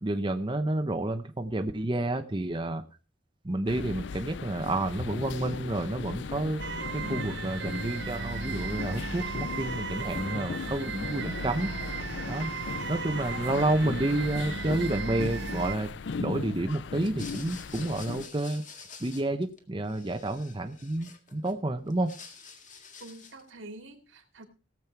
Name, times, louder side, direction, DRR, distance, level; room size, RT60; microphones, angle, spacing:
voice 1, 0.0-2.8 3.4-6.6 7.1-11.7 12.3-12.5 12.9-15.9 16.2-18.6 19.0-22.2, right 1 dB, 25° right, 6 dB, 0.8 m, -30 dB
sound 1, 3.7-18.3, left 5 dB, 65° left, 0.5 m, -38 dB
sound 2, 6.6-15.8, right 5 dB, 65° right, 0.9 m, -36 dB
voice 2, 7.0-7.6 13.1-13.4 23.0-24.4, right 1 dB, 85° right, 6 dB, 2.4 m, -46 dB
sound 3, 16.9-19.6 19.8-21.5 21.9-23.5, left 5 dB, 40° left, 1.9 m, -48 dB
17.5 x 7.5 x 4.6 m, 0.35 s
head